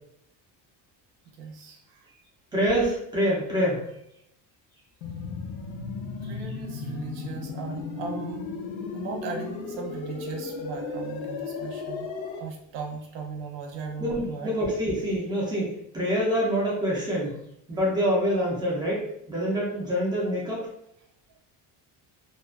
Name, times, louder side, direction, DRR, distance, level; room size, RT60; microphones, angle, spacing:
voice 1, 1.4-2.0 6.2-8.5 8.9-12.1 12.4-14.5, right 5 dB, 90° right, 2 dB, 0.7 m, -37 dB
voice 2, 2.5-3.8 14.0-17.4 17.7-20.7, equal, 10° right, -5 dB, 0.3 m, -26 dB
sound 1, 5.0-12.4, left 4 dB, 85° left, 0.6 m, -35 dB
2.4 x 2.2 x 2.3 m, 0.75 s
cardioid pair, 180°, 43 cm